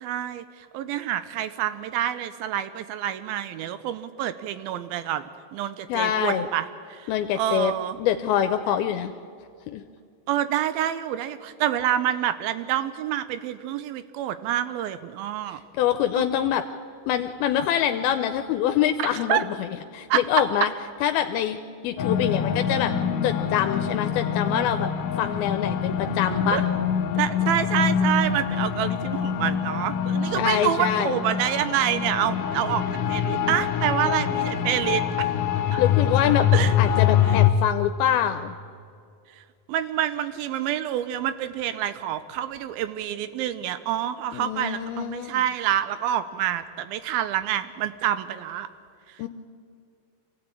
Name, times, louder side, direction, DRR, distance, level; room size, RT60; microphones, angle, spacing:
voice 1, 0.0-0.5 0.7-5.2 5.5-8.0 10.3-15.6 16.2-16.3 19.0-19.4 20.1-20.2 26.5-26.6 27.2-35.0 35.7-35.8 36.5-37.0 39.7-48.7, right 11 dB, 80° right, 13 dB, 2.5 m, -27 dB
voice 2, 5.9-6.5 7.1-7.7 8.0-9.1 9.7-9.8 15.7-16.6 17.1-19.6 19.9-20.7 21.0-21.6 21.8-22.9 23.2-24.9 25.2-26.6 30.3-31.2 35.8-36.5 36.8-38.6 44.3-45.4 49.2-49.3, left 10 dB, 85° left, 8 dB, 2.6 m, -25 dB
sound 1, 22.0-37.5, left 8 dB, 70° left, 2.4 m, -25 dB
24.5 x 16.0 x 8.9 m, 2.5 s
omnidirectional pair, 4.3 m